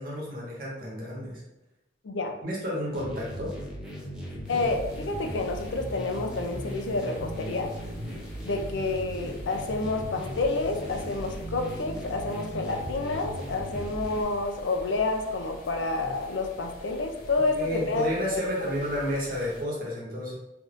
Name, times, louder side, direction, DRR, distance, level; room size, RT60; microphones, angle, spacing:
voice 1, 0.0-1.4 2.4-3.5 17.5-20.3, left 1 dB, 55° right, -4 dB, 1.1 m, -31 dB
sound 1, 2.9-14.2, equal, 5° right, 0.6 m, -38 dB
sound 2, 4.4-19.6, equal, 50° left, 1.1 m, -47 dB
voice 2, 4.5-7.7 8.4-18.1 18.3-18.4, left 3 dB, 90° left, 3 dB, 0.5 m, -29 dB
3.5 x 2.6 x 2.5 m, 0.96 s
head